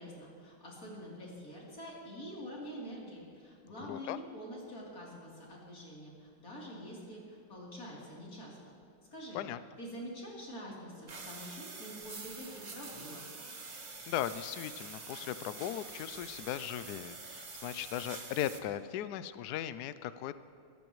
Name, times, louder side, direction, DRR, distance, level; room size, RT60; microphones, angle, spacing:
voice 1, 0.0-8.6 9.1-9.4 9.8-13.2, equal, 40° left, -5 dB, 3.9 m, -46 dB
sound 1, 11.1-18.6, right 4 dB, 45° right, 0.5 m, -46 dB
voice 2, 14.1-20.3, left 11 dB, 90° left, 13 dB, 0.8 m, -38 dB
24.0 x 14.0 x 3.1 m, 2.4 s
omnidirectional pair, 2.3 m